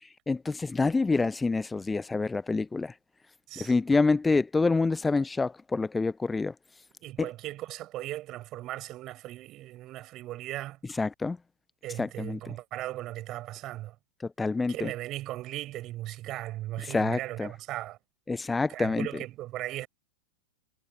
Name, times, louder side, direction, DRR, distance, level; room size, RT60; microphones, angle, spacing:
voice 1, 0.3-2.9 3.6-6.5 10.9-11.4 12.0-12.4 14.4-14.9 16.8-17.5 18.3-19.1, left 3 dB, 10° left, 0.6 m, -27 dB
voice 2, 7.0-10.8 11.8-14.0 14.7-18.0 18.7-19.9, right 15 dB, 35° right, 7.5 m, -37 dB
figure-of-eight pair, 90°, 0 cm